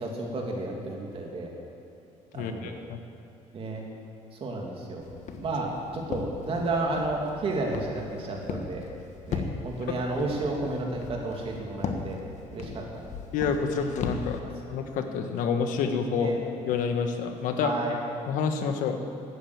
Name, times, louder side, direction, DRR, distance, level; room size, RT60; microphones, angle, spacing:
voice 1, 0.0-1.5 2.3-2.8 3.5-3.9 4.4-5.0 5.4-8.8 9.3-12.2 12.5-13.1 14.4-14.7 16.2-16.3 17.6-17.9, right 2 dB, 45° right, 0 dB, 2.8 m, -32 dB
voice 2, 2.3-3.0 9.9-10.3 13.3-14.4 14.7-16.4 16.7-17.7 18.3-19.0, left 6 dB, 80° left, 6 dB, 1.4 m, -28 dB
Walk footsteps, 5.0-14.4, left 5 dB, 60° left, 1.4 m, -38 dB
13.0 x 9.3 x 8.5 m, 2.8 s
cardioid pair, 120°, 14 cm